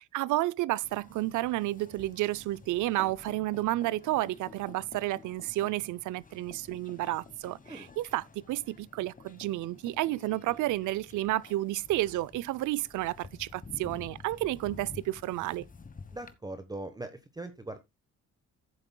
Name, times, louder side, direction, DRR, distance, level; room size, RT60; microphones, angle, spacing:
voice 1, 0.1-15.7, right 16 dB, 80° right, 0.5 m, -31 dB
sound 1, 0.8-16.3, left 4 dB, 25° left, 1.2 m, -51 dB
voice 2, 16.1-17.8, right 2 dB, 15° right, 1.0 m, -40 dB
14.5 x 7.7 x 2.2 m
cardioid pair, 90°, 30 cm